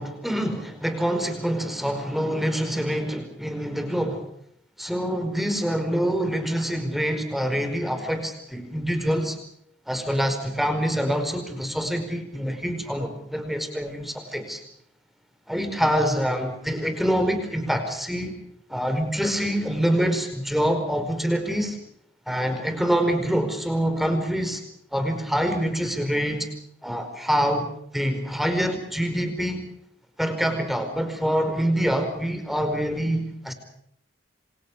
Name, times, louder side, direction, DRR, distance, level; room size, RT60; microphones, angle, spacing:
voice 1, 0.0-4.3 4.8-9.4 9.9-14.6 15.5-18.3 18.7-21.8 22.3-24.6 24.9-26.5 26.8-27.7 27.9-29.7 30.2-33.5, equal, ahead, 7 dB, 4.8 m, -25 dB
27.5 x 26.5 x 5.0 m, 0.72 s
head